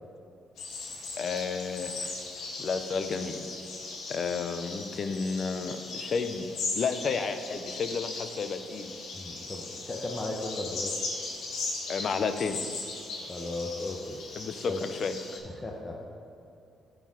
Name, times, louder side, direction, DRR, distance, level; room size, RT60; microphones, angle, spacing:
sound 1, 0.6-15.4, left 3 dB, 75° left, 1.4 m, -38 dB
voice 1, 1.2-2.1 2.6-3.4 4.1-6.5 6.7-8.9 11.9-12.6 14.4-15.2, left 5 dB, 55° left, 9 dB, 0.6 m, -31 dB
voice 2, 9.1-10.9 13.3-14.2 14.7-14.8 15.4-16.0, left 2 dB, 25° left, -1 dB, 0.9 m, -36 dB
11.5 x 3.9 x 4.8 m, 2.7 s
cardioid pair, 90°, 0 cm